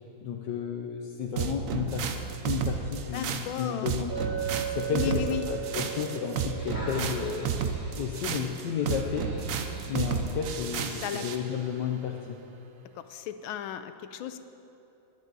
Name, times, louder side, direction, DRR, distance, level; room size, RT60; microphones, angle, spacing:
voice 1, 0.2-2.1 2.4-4.2 4.7-7.5 8.0-9.3 9.9-12.4, left 7 dB, 65° left, 0 dB, 1.3 m, -32 dB
sound 1, 1.4-11.4, right 7 dB, 70° right, 0.7 m, -32 dB
voice 2, 3.1-3.9 4.9-5.5 11.0-11.2 13.0-14.4, left 10 dB, 80° left, 10 dB, 1.4 m, -34 dB
Chink clink, 4.1-8.5, right 10 dB, 90° right, 4.7 m, -37 dB
sound 2, 6.5-10.3 11.0-11.1, equal, 15° left, 2.4 m, -44 dB
23.0 x 8.9 x 4.0 m, 2.9 s
omnidirectional pair, 2.2 m